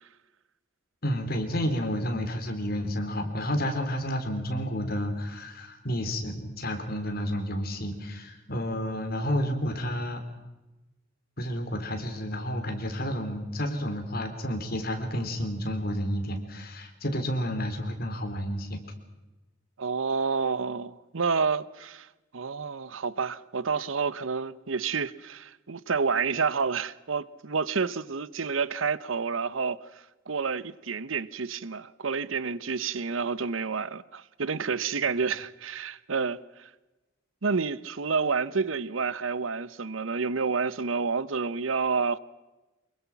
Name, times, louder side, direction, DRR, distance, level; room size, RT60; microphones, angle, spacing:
voice 1, 1.0-10.2 11.4-18.8, equal, 50° left, 3.6 m, -30 dB
voice 2, 19.8-22.1 22.3-29.8 30.3-36.7 37.4-42.2, right 5 dB, 85° right, 0.9 m, -29 dB
25.0 x 22.5 x 6.0 m
head